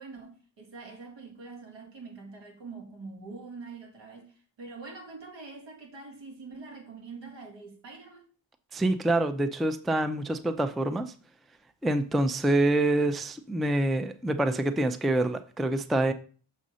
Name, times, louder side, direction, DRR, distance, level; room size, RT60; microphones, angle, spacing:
voice 1, 0.0-8.3, right 4 dB, 80° right, 1.9 m, -44 dB
voice 2, 8.7-11.1 11.8-16.1, right 1 dB, ahead, 0.3 m, -26 dB
6.3 x 4.1 x 6.2 m
wide cardioid pair, 150°, 43 cm